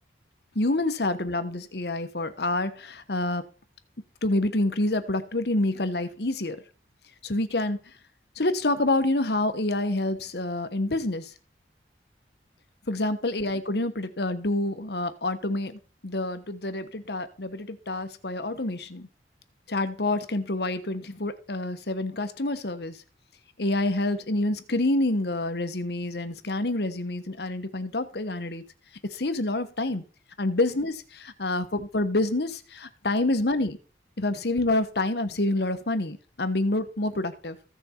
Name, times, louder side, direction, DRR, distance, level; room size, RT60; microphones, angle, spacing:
voice 1, 0.5-3.4 4.2-6.6 7.2-7.8 8.4-11.3 12.9-19.1 19.7-23.0 23.6-28.6 29.0-30.0 30.4-33.8 34.2-37.6, left 2 dB, 60° left, 10 dB, 1.2 m, -27 dB
15.0 x 6.2 x 4.5 m, 0.38 s
head